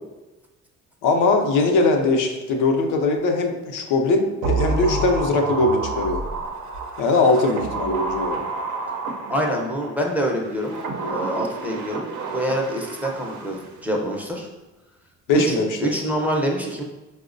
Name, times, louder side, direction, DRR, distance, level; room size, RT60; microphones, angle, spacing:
voice 1, 1.0-6.2 7.0-8.5 15.3-15.9, left 3 dB, 85° left, 3 dB, 0.5 m, -20 dB
sound 1, 4.4-9.9 10.5-13.7 14.0-14.1, right 3 dB, 75° right, 0.6 m, -29 dB
voice 2, 9.3-10.7 11.1-14.5 15.3-15.5 15.8-16.8, right 1 dB, 5° right, -1 dB, 0.5 m, -25 dB
4.4 x 2.1 x 2.5 m, 1.1 s
cardioid pair, 90°, 30 cm